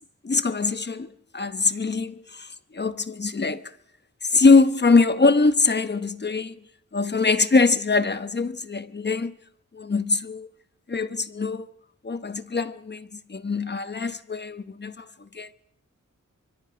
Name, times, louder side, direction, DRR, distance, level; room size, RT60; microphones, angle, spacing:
voice 1, 0.2-3.7 4.2-6.6 6.9-9.3 9.7-10.5 10.9-11.7 12.0-15.5, left 4 dB, 35° left, 1.0 m, -23 dB
25.5 x 24.5 x 5.1 m
wide cardioid pair, 120°, 31 cm